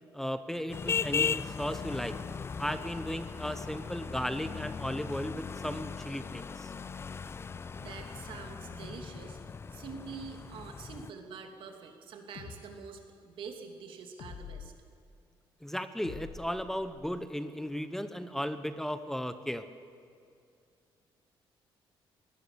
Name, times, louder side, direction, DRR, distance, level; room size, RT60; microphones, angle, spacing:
voice 1, 0.1-2.2 2.6-6.7 15.6-19.7, equal, 5° left, 10 dB, 0.8 m, -35 dB
sound 1, 0.7-11.1, left 6 dB, 30° left, 0.5 m, -37 dB
voice 2, 7.8-14.7, right 5 dB, 70° right, 4 dB, 2.9 m, -46 dB
sound 2, 12.3-12.6 14.2-14.7 16.0-17.2, left 7 dB, 70° left, 2.0 m, -46 dB
22.0 x 18.0 x 6.9 m, 2.3 s
cardioid pair, 120°, 9 cm